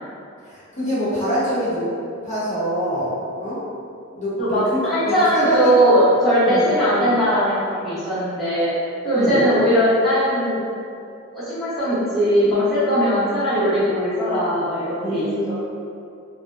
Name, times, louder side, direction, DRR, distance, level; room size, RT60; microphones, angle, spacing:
voice 1, 0.4-1.8 2.2-3.1 3.4-3.6 4.1-4.6 5.0-5.7 6.5-6.6 7.0-7.1 9.1-9.4 15.0-15.6, equal, 35° left, -12 dB, 0.9 m, -25 dB
voice 2, 4.4-8.7 9.0-10.6 11.3-15.3, equal, ahead, -16 dB, 0.9 m, -19 dB
2.5 x 2.1 x 2.4 m, 2.4 s
head